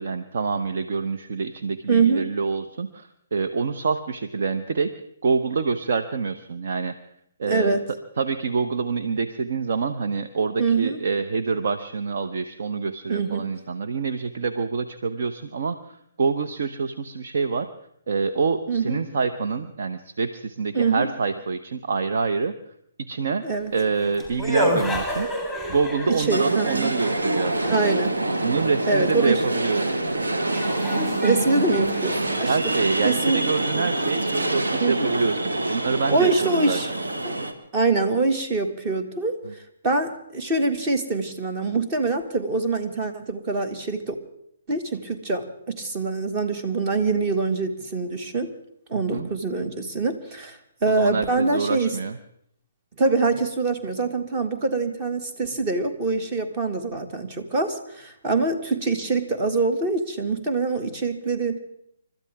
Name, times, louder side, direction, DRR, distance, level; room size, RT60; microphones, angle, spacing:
voice 1, 0.0-4.9 5.2-6.9 7.4-7.8 8.2-17.7 18.1-22.5 23.0-23.4 23.7-25.3 25.7-27.9 28.4-30.0 31.7-31.8 32.3-36.8 39.4-39.5 48.9-49.3 50.9-52.2, right 5 dB, 55° right, 8 dB, 0.9 m, -26 dB
voice 2, 1.9-2.3 7.5-7.9 10.6-11.0 13.1-13.4 18.7-19.0 20.7-21.1 23.4-23.7 26.1-26.9 27.6-28.2 28.9-29.4 31.2-32.5 33.0-33.4 33.7-33.9 34.8-35.1 36.1-36.9 37.2-37.3 37.7-44.2 44.7-48.5 48.9-52.0 53.0-61.6, right 3 dB, 30° right, 7 dB, 1.9 m, -24 dB
sound 1, 23.7-28.0 29.8-29.9 30.5-33.0, equal, 10° right, 3.6 m, -30 dB
sound 2, 26.3-37.5, right 2 dB, 75° right, 1.8 m, -26 dB
30.0 x 13.5 x 3.5 m, 0.74 s
figure-of-eight pair, 130°, 0 cm